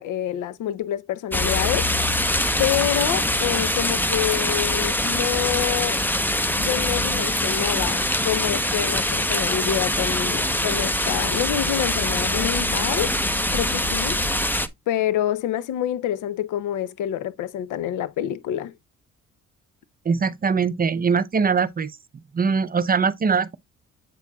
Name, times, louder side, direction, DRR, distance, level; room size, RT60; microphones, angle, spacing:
voice 1, 0.0-1.9 2.6-6.0 6.5-13.2 13.5-14.2 14.9-18.7, left 11 dB, 85° left, 0.6 m, -27 dB
sound 1, 1.3-14.7, left 1 dB, 5° left, 0.8 m, -23 dB
voice 2, 20.0-21.9 22.3-23.6, right 5 dB, 30° right, 0.6 m, -22 dB
8.4 x 5.9 x 2.3 m
cardioid pair, 90°, 30 cm